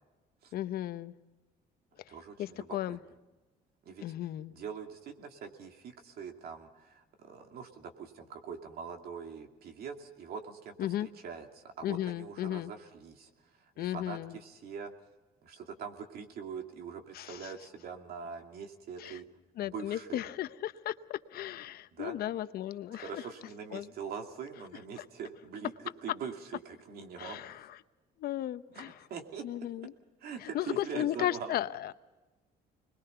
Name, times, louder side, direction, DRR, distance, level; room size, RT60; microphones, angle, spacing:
voice 1, 0.5-1.1 2.1-3.0 4.0-4.6 10.8-11.1 11.8-12.7 13.8-14.4 17.1-17.5 19.0-19.2 19.6-23.2 23.7-23.9 25.0-25.1 27.2-27.8 28.2-28.9 29.4-29.9 30.4-31.9, left 13 dB, 65° left, 13 dB, 0.8 m, -35 dB
voice 2, 2.1-3.0 3.8-4.0 4.5-10.7 11.0-13.3 13.8-14.9 15.4-19.3 19.6-20.2 21.9-22.2 22.9-25.7 26.0-27.4 28.7-29.5 30.2-31.6, right 6 dB, 65° right, 4 dB, 2.7 m, -43 dB
26.0 x 21.5 x 5.7 m, 1.2 s
cardioid pair, 110°, 17 cm